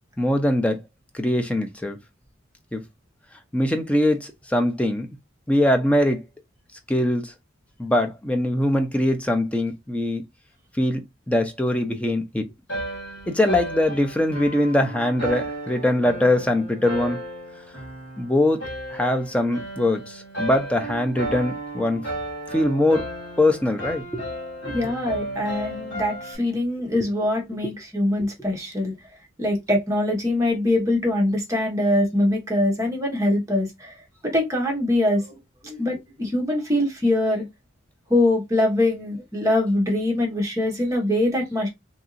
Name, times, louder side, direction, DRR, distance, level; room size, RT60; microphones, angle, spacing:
voice 1, 0.2-0.8 1.1-2.0 2.7-2.8 3.5-5.1 5.5-6.2 6.9-7.3 7.8-10.3 10.8-12.4 13.3-17.2 18.2-18.6 18.9-22.1 22.5-23.1 23.4-24.3 26.9-27.1 27.6-27.7, left 1 dB, 5° left, 0.4 m, -22 dB
sound 1, 12.7-26.4, right 1 dB, 70° left, 1.4 m, -34 dB
voice 2, 24.6-28.9 29.4-33.9 34.2-35.4 35.6-37.4 38.1-41.7, left 1 dB, 15° right, 1.0 m, -23 dB
2.8 x 2.6 x 2.4 m
head